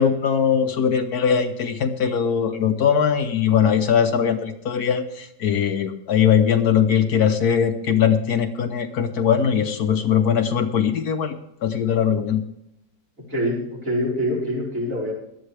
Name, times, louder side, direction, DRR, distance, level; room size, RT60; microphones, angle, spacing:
voice 1, 0.0-11.3 11.6-12.4, left 7 dB, 65° left, 7 dB, 1.4 m, -20 dB
voice 2, 13.3-15.1, equal, 50° right, -5 dB, 4.9 m, -25 dB
17.0 x 12.0 x 3.4 m, 0.79 s
omnidirectional pair, 1.8 m